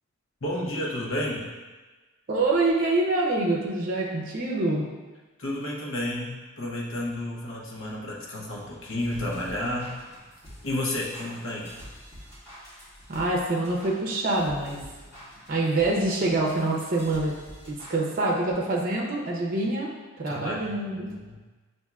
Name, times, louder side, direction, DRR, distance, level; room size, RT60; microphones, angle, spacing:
voice 1, 0.4-1.5 5.4-10.0 10.6-11.7 20.3-21.4, left 1 dB, 75° left, -3 dB, 0.9 m, -31 dB
voice 2, 2.3-4.9 13.1-14.8 15.5-17.3 17.7-19.9 20.2-21.1, right 2 dB, 45° right, -2 dB, 0.6 m, -25 dB
sound 1, 8.8-18.0, equal, 15° left, 1.4 m, -47 dB
6.8 x 2.6 x 2.3 m, 1.3 s
head